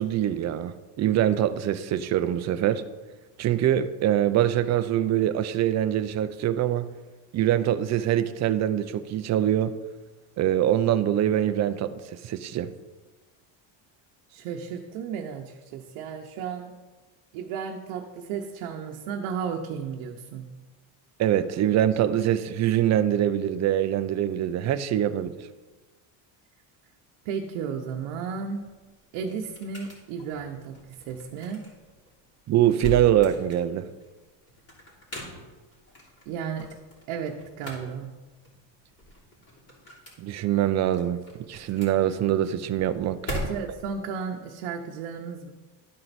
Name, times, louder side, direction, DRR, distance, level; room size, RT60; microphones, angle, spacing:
voice 1, 0.0-2.8 3.4-6.9 7.3-9.7 10.4-12.7 21.2-25.3 32.5-33.9 40.2-41.2 41.5-43.2, right 11 dB, 35° right, 10 dB, 0.5 m, -24 dB
voice 2, 14.3-16.7 17.3-20.5 27.2-28.6 29.1-31.6 36.3-36.7 37.1-38.1 43.3-45.5, right 6 dB, 75° right, 1 dB, 0.9 m, -34 dB
sound 1, 28.5-43.9, equal, 30° left, 3.1 m, -41 dB
12.5 x 4.4 x 4.1 m, 1.2 s
cardioid pair, 125°, 50 cm